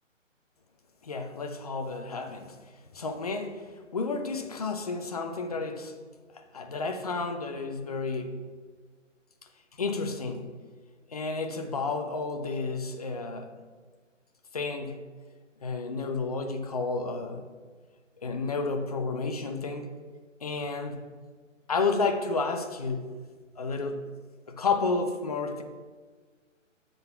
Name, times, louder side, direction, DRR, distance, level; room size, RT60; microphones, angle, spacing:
voice 1, 1.0-2.6 2.9-3.6 3.9-5.9 6.4-8.4 9.8-10.5 11.1-13.5 14.5-15.0 15.6-17.4 18.2-19.9 20.4-21.0 21.7-23.0 23.6-24.1 24.5-25.6, left 4 dB, 30° left, 6 dB, 0.5 m, -31 dB
7.5 x 3.9 x 5.5 m, 1.5 s
hypercardioid pair, 150°, 39 cm